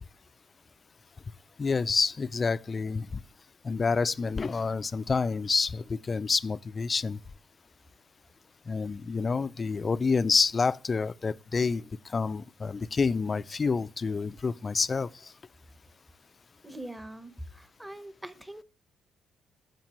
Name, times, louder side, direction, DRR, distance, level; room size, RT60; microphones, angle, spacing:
voice 1, 1.6-3.1 3.6-7.2 8.7-11.8 12.1-15.1, left 4 dB, 35° left, 0.4 m, -28 dB
voice 2, 16.6-18.6, right 1 dB, 10° right, 0.9 m, -43 dB
14.5 x 5.2 x 3.0 m
cardioid pair, 90°, 0 cm